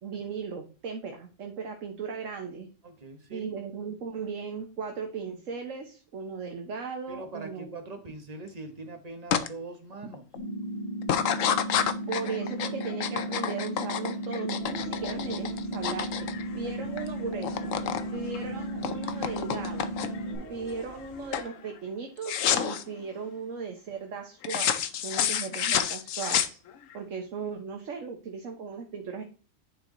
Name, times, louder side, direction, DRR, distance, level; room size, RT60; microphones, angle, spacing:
voice 1, 0.0-2.7 3.3-7.7 12.1-16.1 16.5-17.7 18.1-19.9 20.5-26.6 26.9-29.2, right 5 dB, 75° right, 4 dB, 1.4 m, -37 dB
voice 2, 2.8-3.6 7.1-10.2, right 3 dB, 30° right, 5 dB, 1.3 m, -42 dB
sound 1, 9.3-9.5 9.9-10.4 11.0-17.1 17.3-18.1 18.3-20.3 20.8-21.1 21.3-21.5 22.2-22.8 24.4-27.0, left 9 dB, 80° left, 1.1 m, -29 dB
sound 2, 10.4-20.4, right 1 dB, 65° left, 3.8 m, -35 dB
sound 3, 14.6-22.2, equal, 45° left, 2.5 m, -49 dB
10.0 x 4.6 x 3.8 m, 0.36 s
omnidirectional pair, 1.3 m